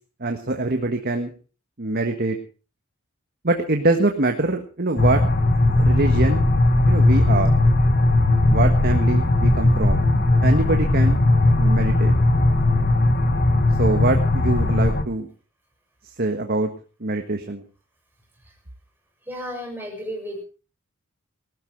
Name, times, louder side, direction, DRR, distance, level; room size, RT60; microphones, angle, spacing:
voice 1, 0.2-1.3 1.8-2.4 3.4-5.2 5.7-6.4 6.8-7.5 8.5-10.0 10.4-11.2 11.6-12.1 13.8-15.3 16.0-16.7 17.0-17.6, right 2 dB, 45° right, 5 dB, 1.6 m, -24 dB
sound 1, 5.0-15.0, left 2 dB, 45° left, 1.6 m, -18 dB
voice 2, 19.3-20.4, equal, 10° right, 0 dB, 6.8 m, -33 dB
19.0 x 13.5 x 4.7 m, 0.36 s
head